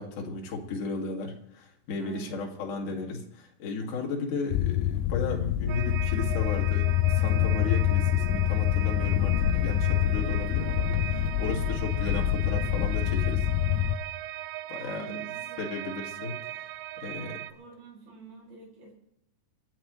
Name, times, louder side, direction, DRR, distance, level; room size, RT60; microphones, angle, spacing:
voice 1, 0.0-13.5 14.7-15.2 15.6-16.4 17.0-17.4, left 4 dB, 50° left, 0 dB, 3.5 m, -35 dB
voice 2, 2.0-2.5 10.0-10.1 14.7-16.2 17.5-18.9, right 4 dB, 60° right, -6 dB, 7.5 m, -46 dB
sound 1, 4.5-14.0, left 12 dB, 90° left, 2.9 m, -26 dB
sound 2, 5.7-17.5, right 15 dB, 85° right, 2.8 m, -38 dB
26.0 x 12.5 x 3.3 m, 0.79 s
omnidirectional pair, 5.0 m